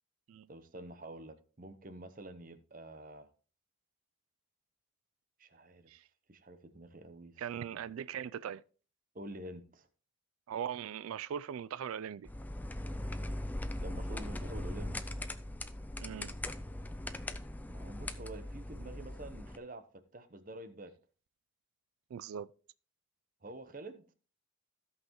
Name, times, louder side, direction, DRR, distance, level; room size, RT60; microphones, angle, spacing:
voice 1, 0.5-3.3 5.4-5.9 6.3-7.8 9.1-9.9 13.8-15.0 17.7-20.9 23.4-24.0, right 1 dB, 40° right, 0.9 m, -48 dB
voice 2, 7.4-8.6 10.5-12.3 16.0-16.3 22.1-22.5, right 8 dB, 85° right, 0.3 m, -40 dB
sound 1, 12.3-19.6, left 1 dB, 10° left, 0.4 m, -40 dB
16.0 x 5.6 x 3.0 m
head